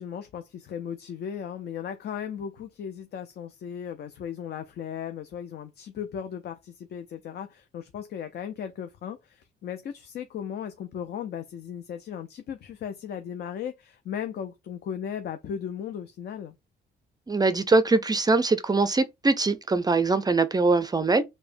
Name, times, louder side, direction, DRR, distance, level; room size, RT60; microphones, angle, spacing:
voice 1, 0.0-16.5, left 8 dB, 55° left, 0.5 m, -36 dB
voice 2, 17.3-21.2, right 3 dB, 20° right, 0.4 m, -22 dB
4.7 x 2.1 x 2.5 m
cardioid pair, 90°, 20 cm